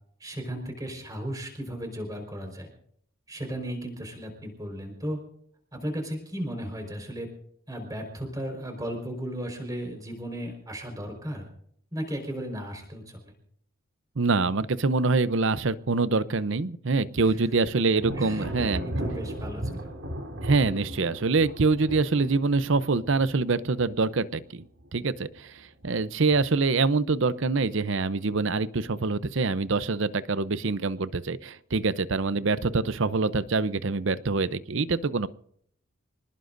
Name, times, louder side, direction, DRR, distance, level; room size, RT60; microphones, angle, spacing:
voice 1, 0.2-2.7 3.3-5.2 5.7-7.3 7.7-11.5 11.9-13.3 17.2-17.4 18.2-19.9, equal, 15° right, 3 dB, 4.6 m, -35 dB
voice 2, 14.2-18.8 20.4-24.7 24.9-35.3, right 3 dB, 60° right, 15 dB, 0.7 m, -25 dB
Thunder, 18.0-24.5 24.8-25.4 25.8-26.7, right 1 dB, 80° right, 3.7 m, -36 dB
27.0 x 19.5 x 2.6 m, 0.66 s
head